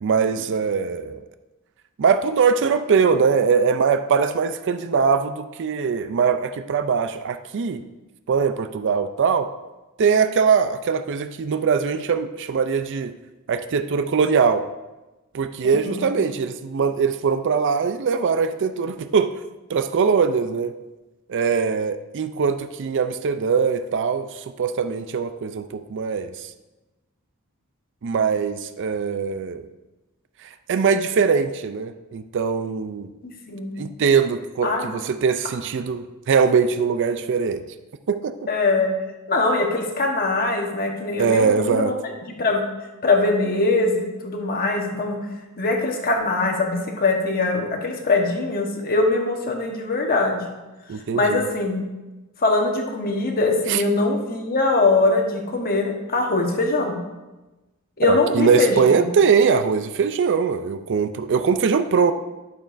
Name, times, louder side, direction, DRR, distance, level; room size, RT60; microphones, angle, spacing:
voice 1, 0.0-1.2 2.0-7.8 8.3-9.5 10.0-13.1 13.5-14.7 15.3-19.3 19.7-20.7 21.3-26.5 28.0-29.7 30.4-33.1 33.8-37.6 38.1-38.3 41.2-41.9 50.9-51.4 53.7-53.8 58.0-62.1, right 5 dB, 55° right, 10 dB, 0.4 m, -21 dB
voice 2, 15.6-16.1 33.2-33.8 34.6-35.0 38.5-38.9 39.3-41.9 42.2-42.6 43.0-45.2 45.6-50.4 51.1-51.8 52.4-57.0 58.0-59.1, left 3 dB, 40° left, 1 dB, 1.2 m, -22 dB
12.0 x 6.8 x 2.6 m, 1.1 s
head